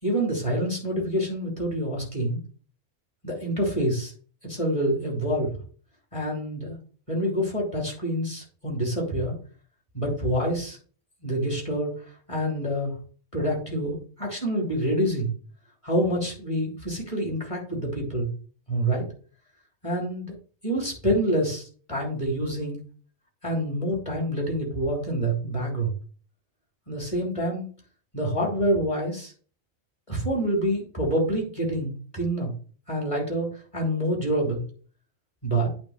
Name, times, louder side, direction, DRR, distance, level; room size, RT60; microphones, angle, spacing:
voice 1, 0.0-2.4 3.2-4.1 4.4-5.5 6.1-6.8 7.1-9.4 9.9-10.8 11.2-12.0 12.3-12.9 13.3-15.3 15.8-18.3 18.7-19.1 19.8-20.3 20.6-22.8 23.4-25.9 26.9-27.7 28.1-29.3 30.1-32.5 32.9-34.6 35.4-35.7, right 1 dB, 20° left, -1 dB, 3.6 m, -27 dB
8.8 x 3.5 x 6.8 m, 0.41 s
omnidirectional pair, 1.5 m